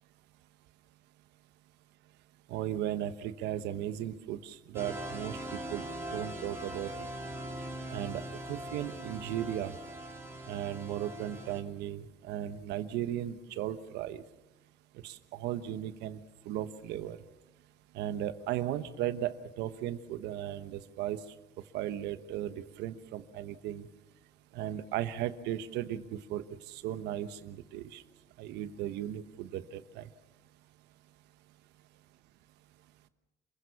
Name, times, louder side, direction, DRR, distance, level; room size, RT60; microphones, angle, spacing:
voice 1, 2.5-5.9 6.1-6.9 7.9-9.7 10.5-14.2 15.0-17.2 17.9-21.2 21.7-23.9 24.5-28.0 28.4-30.1, right 12 dB, 90° right, 12 dB, 1.2 m, -36 dB
sound 1, 4.7-11.6, right 1 dB, 15° right, 3.9 m, -41 dB
28.0 x 16.0 x 7.1 m, 1.0 s
cardioid pair, 110°, 17 cm